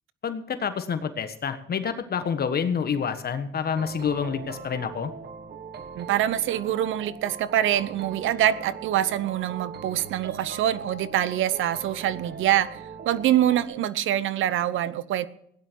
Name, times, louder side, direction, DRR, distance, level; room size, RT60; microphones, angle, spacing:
voice 1, 0.2-5.1, left 6 dB, 50° left, 1.4 m, -28 dB
sound 1, 3.8-13.6, right 6 dB, 55° right, 1.4 m, -41 dB
voice 2, 6.0-15.3, right 12 dB, 80° right, 0.9 m, -25 dB
16.5 x 10.5 x 4.6 m
cardioid pair, 90°, 20 cm